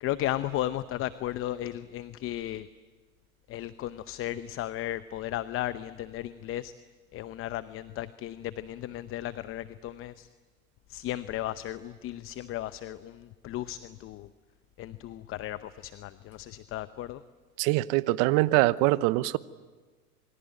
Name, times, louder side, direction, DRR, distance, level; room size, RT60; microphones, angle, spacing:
voice 1, 0.0-2.7 3.5-6.7 7.1-10.3 10.9-14.3 14.8-17.2, left 13 dB, 30° left, 14 dB, 0.8 m, -35 dB
voice 2, 17.6-19.4, right 19 dB, 45° right, 16 dB, 1.0 m, -23 dB
27.5 x 23.5 x 9.1 m, 1.4 s
hypercardioid pair, 110°, 44 cm